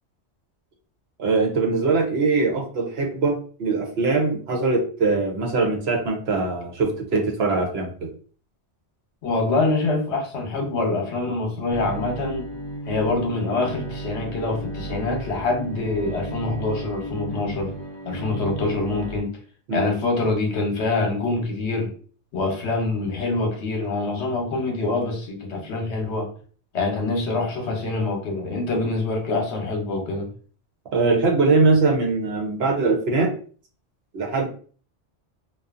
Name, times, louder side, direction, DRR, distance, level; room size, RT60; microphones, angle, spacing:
voice 1, 1.2-8.1 19.7-19.9 30.9-33.3 34.1-34.5, right 3 dB, 65° right, 1 dB, 0.9 m, -22 dB
voice 2, 9.2-12.5 12.9-17.8 18.1-19.3 19.7-21.9 22.3-26.3 26.7-30.3, left 3 dB, 70° left, 1 dB, 1.0 m, -25 dB
Bowed string instrument, 11.7-19.2, right 1 dB, 35° left, 0.5 m, -34 dB
2.6 x 2.3 x 2.4 m, 0.42 s
omnidirectional pair, 1.2 m